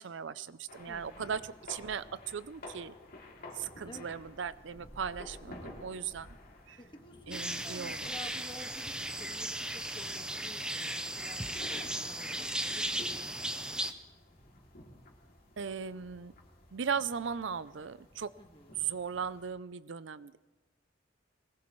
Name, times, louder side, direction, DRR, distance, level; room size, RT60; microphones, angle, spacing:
voice 1, 0.0-2.9 3.5-6.3 6.7-6.8 7.3-8.0 15.6-16.3 16.7-18.3 18.8-20.4, right 6 dB, 75° right, 16 dB, 0.5 m, -37 dB
sound 1, 0.7-19.5, left 1 dB, 55° left, 2.8 m, -53 dB
voice 2, 0.9-1.3 3.9-4.1 6.8-8.9 9.2-13.4 18.4-18.7, left 1 dB, 25° left, 3 dB, 1.6 m, -51 dB
sound 2, 7.3-13.9, right 1 dB, 5° right, 0.7 m, -36 dB
21.0 x 19.5 x 3.2 m, 1.2 s
head